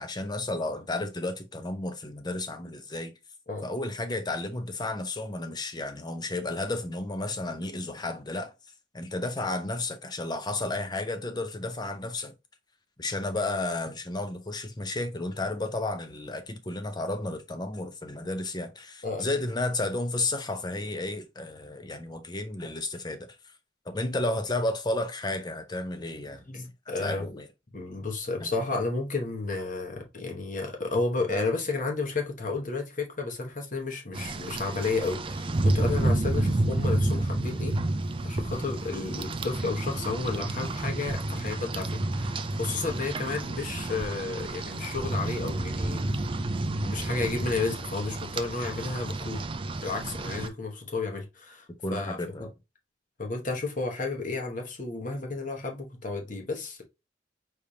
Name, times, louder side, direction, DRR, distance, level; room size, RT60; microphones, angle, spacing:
voice 1, 0.0-3.1 3.6-8.5 8.9-12.3 13.0-23.3 23.9-26.7 27.0-27.5 28.4-28.5 51.8-52.5, left 2 dB, 20° left, 0.7 m, -32 dB
voice 2, 26.5-27.4 27.7-37.8 38.2-46.1 46.8-49.5 49.8-52.5 53.2-56.8, left 3 dB, 45° left, 1.2 m, -32 dB
Rain, 34.1-50.5, right 2 dB, 30° right, 0.4 m, -30 dB
5.0 x 3.4 x 2.8 m
head